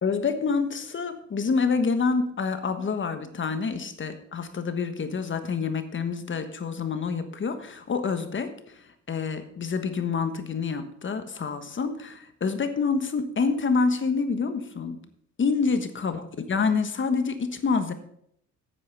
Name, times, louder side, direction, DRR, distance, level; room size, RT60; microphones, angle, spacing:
voice 1, 0.0-8.5 9.1-15.0 15.4-16.2 16.5-17.9, left 5 dB, 40° left, 9 dB, 1.3 m, -27 dB
9.2 x 8.9 x 5.6 m, 0.70 s
cardioid pair, 90°, 30 cm